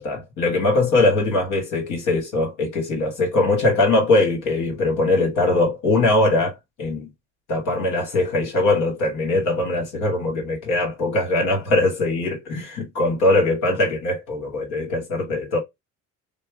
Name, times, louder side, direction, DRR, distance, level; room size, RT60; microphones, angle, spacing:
voice 1, 0.0-7.1 7.5-15.6, left 2 dB, 90° left, 1.5 m, -21 dB
5.4 x 2.0 x 3.4 m
cardioid pair, 90°, 30 cm